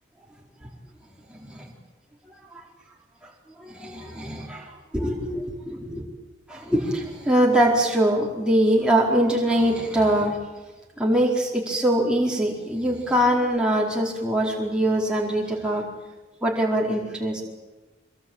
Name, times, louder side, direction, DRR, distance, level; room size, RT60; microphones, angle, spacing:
voice 1, 1.3-1.7 2.5-2.6 3.2-3.3 3.6-6.0 6.5-10.4 11.0-15.9 16.4-17.4, right 1 dB, 5° right, -2 dB, 4.4 m, -23 dB
25.0 x 22.0 x 9.0 m, 1.2 s
head